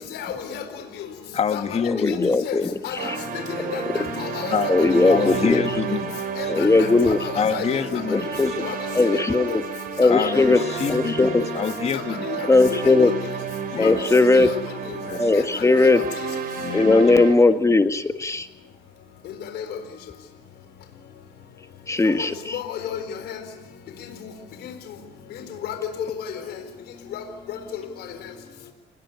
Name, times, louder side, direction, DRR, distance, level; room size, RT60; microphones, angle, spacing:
voice 1, 0.1-0.6 1.5-1.6 2.1-2.2 2.4-2.6 2.8-3.1 3.7-3.9 4.2-4.7 5.0-5.2 6.4-7.9 8.6-8.8 9.5-9.6 10.0-10.3 10.5-10.6 11.9-12.5 12.8-13.1 13.7-13.9 14.4-14.6 16.0-16.1 19.5-19.8 22.0-22.1 22.5-23.4 24.2-24.3 24.6-24.7 25.6-25.9 26.2-26.3 27.1-27.6, left 9 dB, 75° left, 7 dB, 4.1 m, -32 dB
voice 2, 1.3-2.3 4.5-4.7 5.0-6.5 7.4-8.6 10.1-12.4 13.7-14.1 15.0-15.3 16.6-17.3, left 7 dB, 40° left, 9 dB, 2.0 m, -27 dB
voice 3, 2.0-2.7 3.0-3.2 4.7-5.6 6.5-7.2 8.4-8.5 8.9-9.6 10.0-10.6 10.9-11.5 12.5-13.1 13.8-14.5 15.2-16.0 16.7-18.5 21.9-22.6, left 3 dB, 15° left, 9 dB, 1.6 m, -18 dB
sound 1, 3.0-17.4, right 5 dB, 55° right, 5.6 m, -31 dB
29.5 x 19.5 x 9.8 m, 0.86 s
cardioid pair, 110°, 17 cm